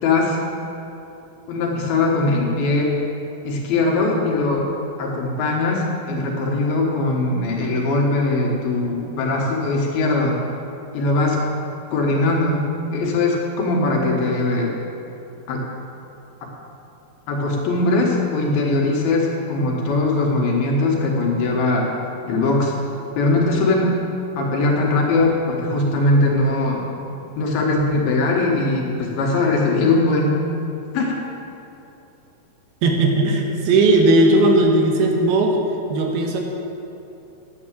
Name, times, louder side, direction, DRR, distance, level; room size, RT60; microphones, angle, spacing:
voice 1, 0.0-0.4 1.5-3.0 3.4-4.7 5.0-10.4 10.9-11.4 11.9-14.7 15.5-15.6 17.3-21.9 22.3-22.7 23.2-24.0 24.4-26.8 27.4-30.4 30.9-31.1, left 2 dB, 80° left, -1 dB, 3.3 m, -20 dB
voice 2, 32.8-35.6 35.9-36.4, right 2 dB, 85° right, 1 dB, 3.1 m, -17 dB
9.5 x 8.0 x 7.5 m, 2.8 s
omnidirectional pair, 4.3 m